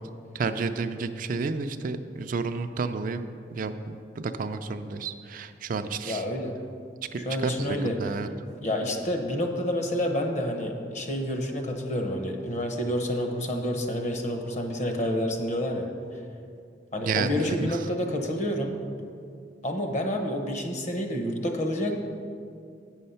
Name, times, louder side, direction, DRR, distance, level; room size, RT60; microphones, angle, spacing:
voice 1, 0.3-3.3 3.5-6.2 7.1-8.3 17.0-17.8, right 4 dB, 50° right, 9 dB, 0.4 m, -31 dB
voice 2, 6.0-6.5 7.3-7.9 8.6-15.9 16.9-18.8 19.6-21.9, left 1 dB, 45° left, 3 dB, 1.0 m, -29 dB
8.2 x 6.4 x 5.6 m, 2.3 s
head